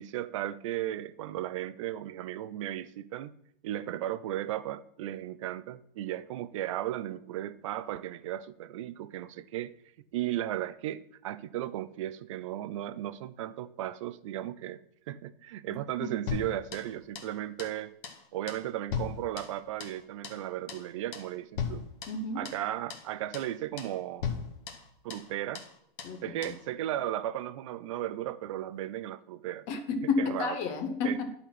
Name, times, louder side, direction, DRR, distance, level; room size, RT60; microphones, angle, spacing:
voice 1, 0.0-3.3 3.6-9.7 10.1-14.8 15.1-17.9 18.3-21.9 22.4-24.3 25.0-25.6 26.2-29.7 30.2-30.6 31.0-31.2, right 13 dB, 35° right, 0.4 m, -35 dB
sound 1, 16.3-17.3 17.6-17.8 18.0-18.2 18.5-20.0 20.2-20.4 20.7-20.9 21.1-21.3 21.6-22.6 22.9-23.1 23.3-23.5 23.8-24.0 24.2-25.3 25.5-25.7 26.0-26.2 26.4-26.6, left 6 dB, 60° left, 1.7 m, -38 dB
voice 2, 22.1-22.5 26.0-26.6 29.7-31.3, left 4 dB, 30° left, 0.9 m, -31 dB
11.0 x 4.2 x 5.9 m
hypercardioid pair, 155°, 29 cm